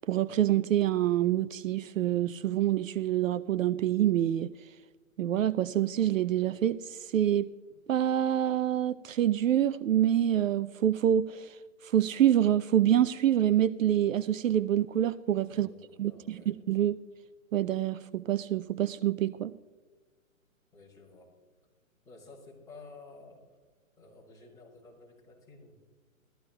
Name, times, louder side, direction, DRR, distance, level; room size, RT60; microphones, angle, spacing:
voice 1, 0.1-4.5 5.2-7.5 7.9-15.7 16.0-17.0 17.5-19.5, right 11 dB, 65° right, 15 dB, 0.5 m, -26 dB
voice 2, 15.5-16.5 20.7-21.3 22.0-23.4 24.0-25.8, left 3 dB, 10° left, -6 dB, 4.4 m, -52 dB
20.5 x 14.0 x 2.2 m, 1.4 s
hypercardioid pair, 145°, 42 cm